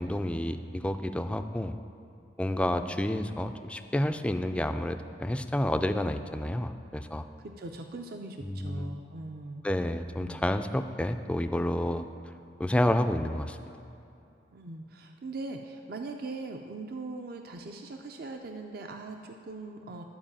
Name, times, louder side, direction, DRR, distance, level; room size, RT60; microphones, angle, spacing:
voice 1, 0.0-1.8 2.4-7.2 8.4-8.9 9.6-12.1 12.6-13.6, left 1 dB, 5° left, 8 dB, 0.3 m, -29 dB
voice 2, 7.4-9.7 10.2-10.4 14.5-20.0, right 3 dB, 55° right, 4 dB, 0.5 m, -40 dB
11.5 x 4.7 x 7.2 m, 2.7 s
head